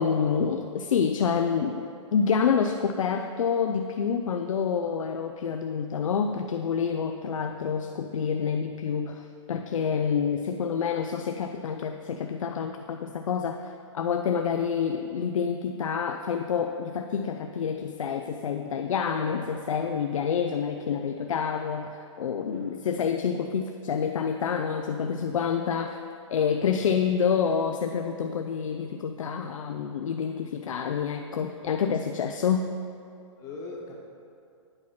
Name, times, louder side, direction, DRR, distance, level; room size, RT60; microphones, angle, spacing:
voice 1, 0.0-26.0 26.3-32.7, left 6 dB, 90° left, 5 dB, 0.4 m, -28 dB
voice 2, 22.4-22.9 26.6-26.9 33.4-34.0, left 3 dB, 20° left, -1 dB, 1.1 m, -42 dB
8.8 x 4.2 x 5.9 m, 2.6 s
hypercardioid pair, 150°, 16 cm